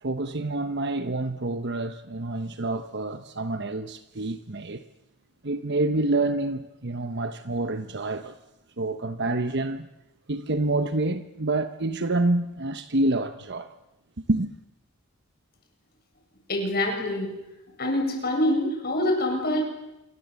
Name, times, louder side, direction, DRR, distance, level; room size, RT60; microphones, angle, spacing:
voice 1, 0.0-4.8 5.4-8.4 8.8-9.9 10.3-13.7 14.3-14.5, right 2 dB, 50° right, 1.1 m, -27 dB
voice 2, 16.5-17.3 17.8-19.6, left 1 dB, 45° left, 8.0 m, -25 dB
27.5 x 24.5 x 8.3 m
head